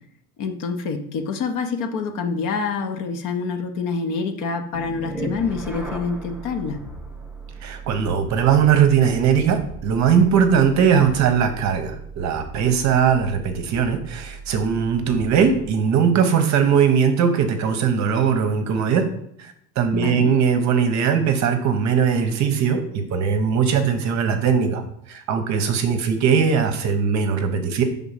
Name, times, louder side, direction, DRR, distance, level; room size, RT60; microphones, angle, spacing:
voice 1, 0.4-6.8 19.9-20.3, left 4 dB, 45° left, 6 dB, 0.9 m, -26 dB
sound 1, 4.7-15.9, right 3 dB, 5° right, 0.4 m, -37 dB
voice 2, 7.6-19.1 19.4-24.8 25.1-27.8, right 7 dB, 40° right, 7 dB, 0.8 m, -20 dB
4.8 x 3.7 x 5.6 m, 0.71 s
supercardioid pair, 130°, 45 cm